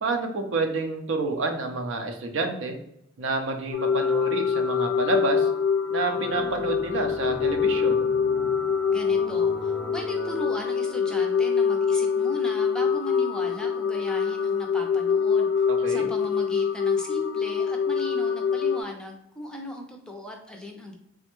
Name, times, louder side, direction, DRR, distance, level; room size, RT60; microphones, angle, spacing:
voice 1, 0.0-2.8 3.2-5.5 5.9-8.1 15.7-16.1, right 3 dB, 75° right, 4 dB, 0.5 m, -28 dB
sound 1, 3.7-18.8, left 6 dB, 80° left, 0.4 m, -25 dB
sound 2, 6.0-11.0, right 1 dB, 10° right, 0.9 m, -42 dB
voice 2, 8.9-20.9, left 1 dB, 5° left, 1 dB, 0.4 m, -38 dB
3.3 x 2.1 x 2.9 m, 0.77 s
head